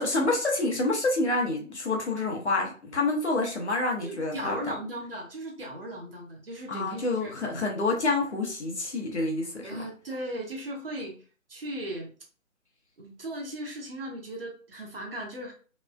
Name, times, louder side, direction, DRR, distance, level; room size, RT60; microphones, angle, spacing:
voice 1, 0.0-4.7 6.7-9.8, left 2 dB, 55° left, 0 dB, 0.9 m, -28 dB
voice 2, 4.0-7.3 9.6-11.2 11.5-12.1 13.0-15.5, right 1 dB, 45° right, 0 dB, 0.8 m, -37 dB
3.1 x 2.0 x 2.3 m, 0.37 s
figure-of-eight pair, 145°, 42 cm